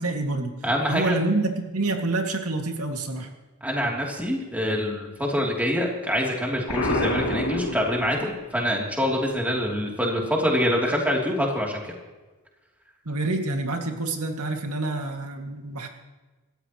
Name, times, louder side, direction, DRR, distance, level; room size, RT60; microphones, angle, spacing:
voice 1, 0.0-0.5 0.9-3.3 13.1-15.9, right 2 dB, 85° right, 3 dB, 2.2 m, -27 dB
voice 2, 0.6-1.2 3.6-11.9, equal, 5° right, -1 dB, 3.1 m, -25 dB
Explosion, 6.7-8.5, left 1 dB, 80° left, 2.8 m, -27 dB
27.0 x 13.5 x 3.1 m, 1.2 s
head